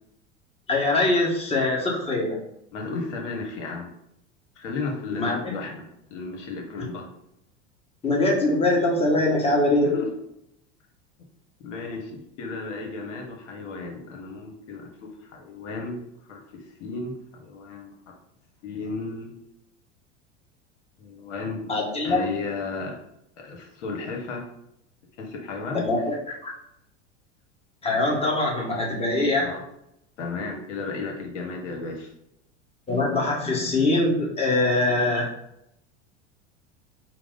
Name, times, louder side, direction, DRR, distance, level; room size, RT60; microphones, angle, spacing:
voice 1, 0.7-2.4 5.1-5.4 8.0-9.9 21.7-22.3 25.7-26.5 27.8-29.6 32.9-35.3, left 2 dB, 15° left, -2 dB, 1.2 m, -23 dB
voice 2, 2.7-3.9 4.6-5.8 6.1-7.1 9.8-10.1 11.6-16.0 16.3-17.9 18.6-19.3 21.0-21.6 22.0-23.0 23.4-24.4 25.2-25.8 29.4-29.6 30.2-32.1, left 4 dB, 70° left, 1 dB, 1.0 m, -34 dB
4.6 x 2.0 x 3.8 m, 0.79 s
hypercardioid pair, 85°, 37 cm